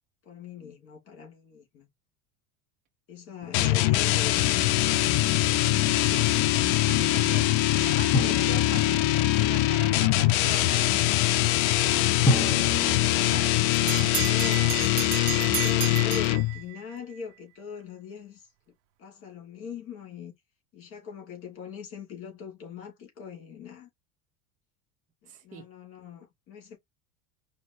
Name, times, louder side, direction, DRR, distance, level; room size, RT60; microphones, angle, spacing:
voice 1, 0.2-1.9 3.1-4.6 14.0-18.5 19.0-20.3 20.7-23.9 25.2-26.8, left 7 dB, 35° left, 2.8 m, -41 dB
sound 1, 3.5-16.6, left 15 dB, 60° left, 0.6 m, -23 dB
voice 2, 6.9-7.5 7.8-10.9 11.7-13.5 13.8-14.1 25.3-25.6, right 5 dB, 20° right, 0.9 m, -41 dB
Drum, 8.1-9.6 12.3-14.4, left 2 dB, 10° left, 1.0 m, -30 dB
Bell, 12.9-17.0, right 22 dB, 70° right, 0.5 m, -34 dB
5.0 x 2.9 x 2.9 m
supercardioid pair, 155°, 37 cm